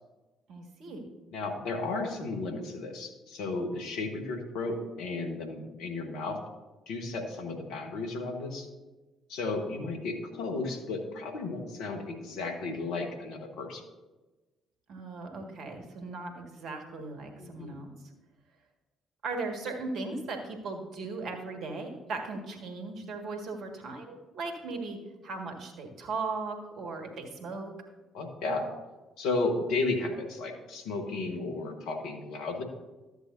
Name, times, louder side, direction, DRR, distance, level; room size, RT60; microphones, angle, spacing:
voice 1, 0.5-1.0 14.9-17.9 19.2-25.0 25.2-27.7, right 3 dB, 60° right, 2 dB, 1.8 m, -37 dB
voice 2, 1.3-6.4 6.9-8.7 9.3-13.8 17.4-17.7 28.1-28.7 29.2-32.6, left 3 dB, 70° left, 4 dB, 1.3 m, -33 dB
13.0 x 8.0 x 2.7 m, 1.2 s
hypercardioid pair, 50°, 0 cm